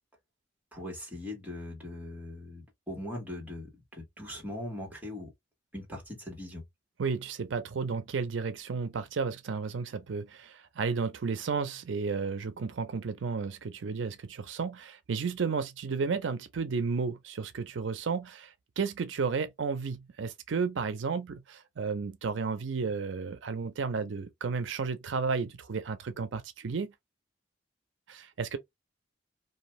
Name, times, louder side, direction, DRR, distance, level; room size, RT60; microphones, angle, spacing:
voice 1, 0.7-5.3 5.7-6.6, left 1 dB, 10° right, 1.4 m, -40 dB
voice 2, 7.0-26.9 28.1-28.6, right 5 dB, 90° right, 0.5 m, -33 dB
2.7 x 2.3 x 3.0 m
head